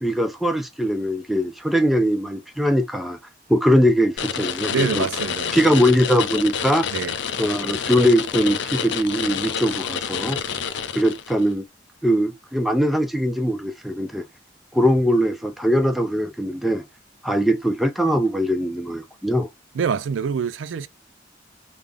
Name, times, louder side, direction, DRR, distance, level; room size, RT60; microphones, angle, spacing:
voice 1, 0.0-3.2 3.5-5.1 5.5-6.9 7.4-10.4 10.9-11.6 12.0-14.2 14.7-16.9 17.2-19.5, equal, ahead, 0.4 m, -21 dB
sound 1, 4.2-11.4, left 7 dB, 70° left, 0.5 m, -28 dB
voice 2, 4.7-5.8 6.9-7.2 10.3-10.5 19.7-20.9, right 6 dB, 90° right, 0.4 m, -26 dB
3.6 x 2.0 x 3.4 m
head